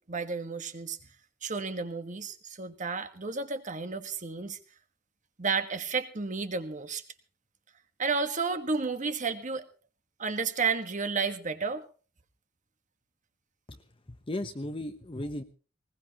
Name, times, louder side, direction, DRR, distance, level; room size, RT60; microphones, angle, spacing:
voice 1, 0.1-1.0 1.4-4.6 5.4-7.0 8.0-9.7 10.2-11.8, right 4 dB, 40° right, 9 dB, 1.5 m, -32 dB
voice 2, 13.7-15.4, left 1 dB, 25° left, 6 dB, 0.9 m, -36 dB
20.5 x 19.5 x 3.0 m, 0.37 s
head